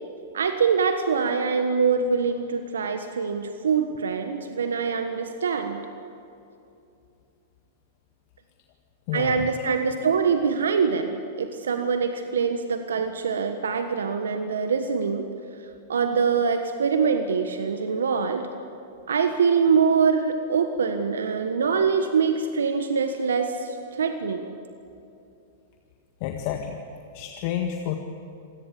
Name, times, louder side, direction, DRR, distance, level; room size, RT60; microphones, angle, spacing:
voice 1, 0.3-5.8 9.1-15.3 15.9-18.5 19.1-24.5, right 5 dB, 80° right, 7 dB, 1.4 m, -24 dB
voice 2, 9.1-9.5 26.2-26.8 27.1-28.0, left 10 dB, 50° left, 4 dB, 1.7 m, -29 dB
26.5 x 17.0 x 8.4 m, 2.7 s
hypercardioid pair, 105°, 0 cm